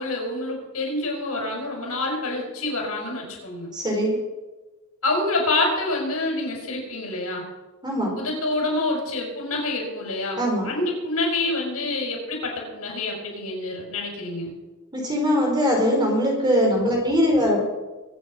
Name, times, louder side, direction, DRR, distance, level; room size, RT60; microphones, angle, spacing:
voice 1, 0.0-3.7 5.0-7.4 8.2-14.5, left 2 dB, 90° left, 0 dB, 5.4 m, -27 dB
voice 2, 3.7-4.1 7.8-8.2 10.4-10.7 14.9-17.7, equal, 20° right, 0 dB, 4.4 m, -21 dB
24.0 x 8.6 x 5.5 m, 1.2 s
head